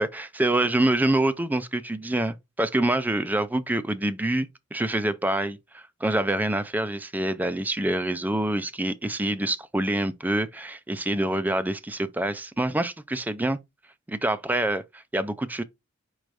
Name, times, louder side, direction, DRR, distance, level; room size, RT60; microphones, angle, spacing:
voice 1, 0.0-13.6 14.1-15.6, right 1 dB, 10° right, 0.4 m, -26 dB
4.7 x 4.3 x 2.5 m
head